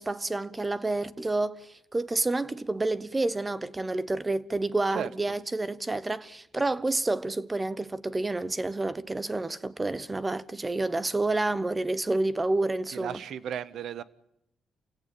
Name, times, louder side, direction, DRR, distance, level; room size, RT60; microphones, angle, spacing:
voice 1, 0.0-13.2, right 2 dB, 20° right, 1.2 m, -29 dB
voice 2, 12.9-14.0, right 9 dB, 75° right, 1.5 m, -35 dB
28.5 x 17.0 x 8.6 m
cardioid pair, 100°, 0 cm